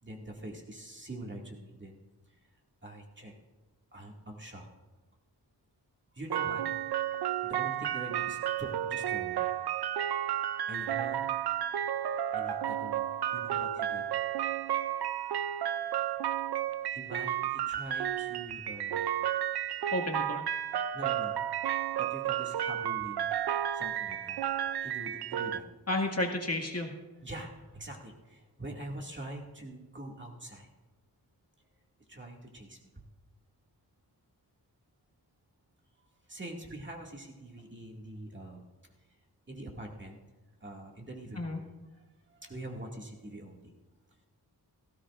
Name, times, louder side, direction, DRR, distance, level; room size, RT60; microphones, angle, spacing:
voice 1, 0.0-2.0 2.8-3.3 3.9-4.7 6.1-6.7 7.4-9.5 10.7-11.3 12.3-14.1 16.9-19.2 20.8-21.4 22.0-23.3 23.7-24.4 24.8-25.6 27.2-30.7 32.1-32.8 36.3-38.6 39.5-40.2 40.6-41.7 42.3-43.7, right 1 dB, 30° right, -1 dB, 2.1 m, -44 dB
sound 1, 6.3-25.6, right 11 dB, 75° right, 0.5 m, -32 dB
voice 2, 19.9-20.5 25.9-26.9 41.3-41.6, left 1 dB, 40° left, 0 dB, 2.0 m, -32 dB
18.0 x 16.0 x 2.5 m, 1.2 s
wide cardioid pair, 80°, 40 cm